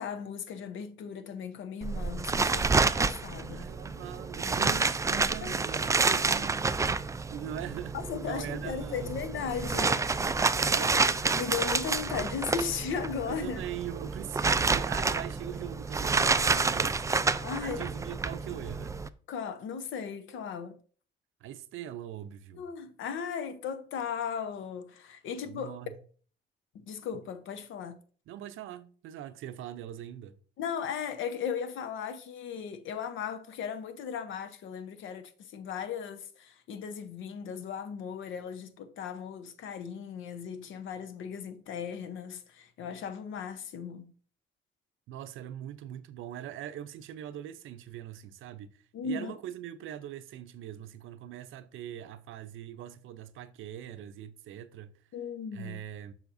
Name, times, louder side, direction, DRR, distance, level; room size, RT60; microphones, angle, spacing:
voice 1, 0.0-3.7 5.4-5.5 7.9-10.0 10.8-11.0 11.3-13.6 17.4-17.8 19.3-20.8 22.6-25.8 26.7-28.0 30.6-44.1 48.9-49.3 55.1-55.8, left 7 dB, 75° left, 0.9 m, -37 dB
sound 1, 1.8-19.1, right 4 dB, 15° right, 0.3 m, -29 dB
voice 2, 3.5-6.7 7.3-8.0 8.2-9.2 10.7-11.0 13.3-17.1 17.6-19.0 21.4-22.6 25.4-26.0 27.1-27.2 28.3-30.4 45.1-54.9 55.5-56.1, right 11 dB, 80° right, 0.6 m, -42 dB
7.1 x 5.7 x 2.6 m
cardioid pair, 90°, 20 cm